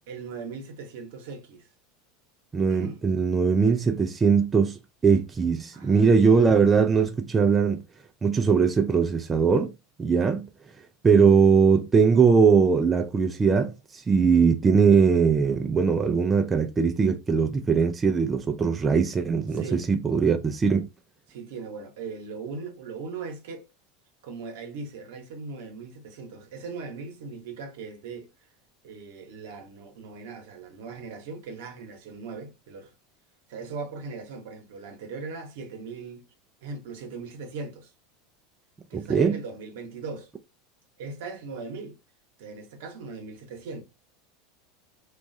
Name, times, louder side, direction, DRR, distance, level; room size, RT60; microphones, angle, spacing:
voice 1, 0.1-1.7 2.7-3.0 5.7-6.4 19.5-19.9 21.3-23.6 24.2-28.3 28.8-32.9 33.5-36.3 36.6-37.9 38.9-40.3 41.0-42.0 42.4-43.8, right 4 dB, 75° right, 0.9 m, -39 dB
voice 2, 2.5-7.8 8.2-9.7 10.0-10.5 11.0-20.9 38.9-39.4, right 5 dB, 20° right, 0.3 m, -21 dB
3.0 x 2.3 x 2.6 m
supercardioid pair, 120°, 0 cm